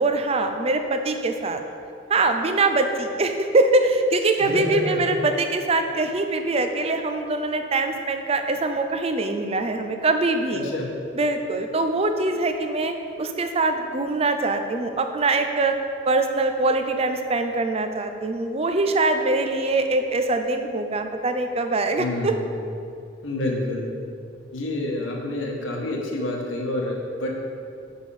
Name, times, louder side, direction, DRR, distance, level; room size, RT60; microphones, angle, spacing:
voice 1, 0.0-1.6 2.1-10.6 11.2-15.8 16.1-22.3, right 2 dB, 30° right, 6 dB, 0.4 m, -23 dB
voice 2, 4.4-5.1 10.5-10.9 22.0-22.4 23.2-23.8 24.5-27.3, left 1 dB, 70° left, 0 dB, 1.2 m, -28 dB
7.0 x 5.5 x 4.9 m, 2.5 s
head